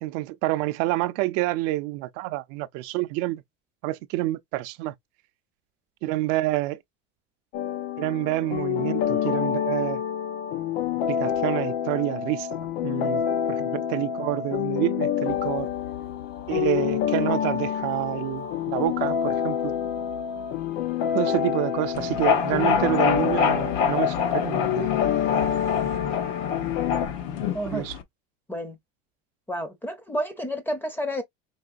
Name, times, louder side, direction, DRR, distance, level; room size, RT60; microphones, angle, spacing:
voice 1, 0.0-3.4 3.8-4.9 6.0-6.8 8.0-10.0 11.1-12.5 12.8-13.2 13.5-15.7 16.5-19.7 21.1-24.9 27.7-28.0, right 17 dB, 55° right, 0.5 m, -28 dB
sound 1, 7.5-27.1, left 9 dB, 90° left, 0.9 m, -28 dB
sound 2, 15.3-26.0, left 7 dB, 55° left, 1.3 m, -45 dB
sound 3, 21.9-28.0, left 7 dB, 75° left, 1.0 m, -26 dB
voice 2, 27.5-27.9 28.5-28.8 29.5-31.2, equal, 5° left, 0.6 m, -30 dB
4.7 x 3.0 x 2.4 m
cardioid pair, 165°, 29 cm